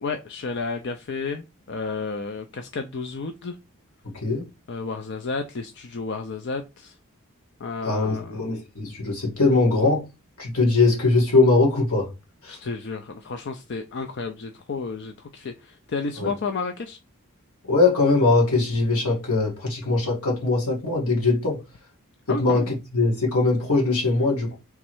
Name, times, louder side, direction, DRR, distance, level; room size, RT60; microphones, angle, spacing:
voice 1, 0.0-3.6 4.7-7.0 7.6-8.4 12.5-17.0 22.3-22.7, left 4 dB, 50° left, 0.5 m, -32 dB
voice 2, 7.8-10.1 10.4-12.1 12.4-12.6 16.2-16.3 17.7-21.6 22.3-24.5, left 3 dB, 75° left, 1.9 m, -21 dB
3.5 x 3.2 x 4.4 m
head